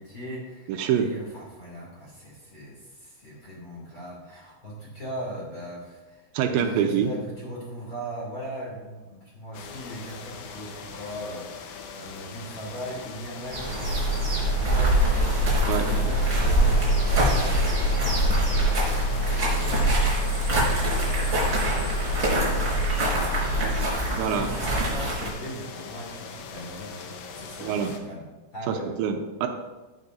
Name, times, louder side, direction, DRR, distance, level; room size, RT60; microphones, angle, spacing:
voice 1, 0.0-16.8 17.4-18.7 19.3-28.2 28.5-28.9, equal, 30° left, -5 dB, 2.8 m, -39 dB
voice 2, 0.7-1.1 6.3-7.1 15.7-15.9 24.2-24.5 27.6-27.9 28.7-29.5, right 8 dB, 85° right, 4 dB, 3.0 m, -25 dB
sound 1, 9.5-28.0, left 5 dB, 85° left, 3.3 m, -41 dB
sound 2, 13.5-25.3, right 1 dB, 25° right, 4.3 m, -25 dB
sound 3, 13.8-23.9, equal, 60° left, 1.4 m, -27 dB
16.5 x 8.4 x 2.7 m, 1.2 s
omnidirectional pair, 5.2 m